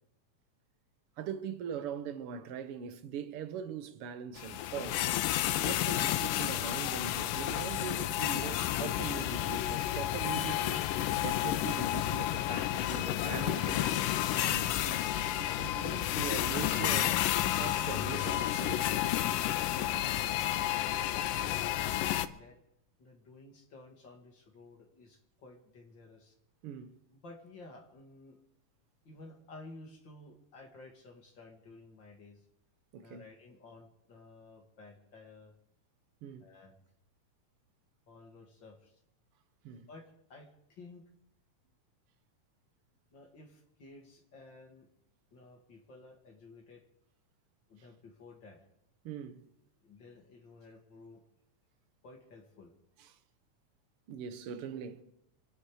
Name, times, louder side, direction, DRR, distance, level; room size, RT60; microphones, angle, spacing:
voice 1, 1.2-5.1 5.6-14.0 14.4-15.0 15.3-18.9 26.6-27.0 32.9-33.3 36.2-36.5 39.6-39.9 49.0-49.5 53.0-53.2 54.1-55.0, right 8 dB, 60° right, 1.6 m, -41 dB
sound 1, 4.4-22.3, left 13 dB, 90° left, 2.3 m, -31 dB
voice 2, 21.4-22.6 23.0-26.3 27.1-28.4 29.0-32.4 33.0-35.5 36.4-36.7 38.1-38.9 39.7-41.0 43.1-44.9 45.3-46.8 47.7-48.6 49.8-51.2 52.0-52.7, left 2 dB, 40° left, 2.5 m, -53 dB
27.5 x 9.7 x 5.0 m
omnidirectional pair, 3.7 m